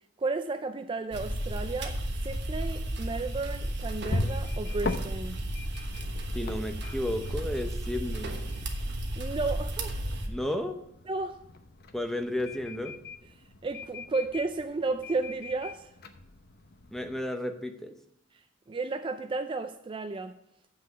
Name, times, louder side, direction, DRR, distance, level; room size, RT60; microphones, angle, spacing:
voice 1, 0.2-5.4 9.2-10.2 11.1-11.4 13.6-15.9 18.7-20.4, right 3 dB, 25° right, 0.4 m, -33 dB
sound 1, 1.1-10.3, right 1 dB, 65° right, 1.2 m, -33 dB
sound 2, 3.8-17.2, left 2 dB, 55° left, 0.8 m, -41 dB
voice 2, 6.3-8.4 10.3-10.8 11.9-13.0 16.9-18.0, left 1 dB, ahead, 0.7 m, -33 dB
7.5 x 6.0 x 7.3 m
head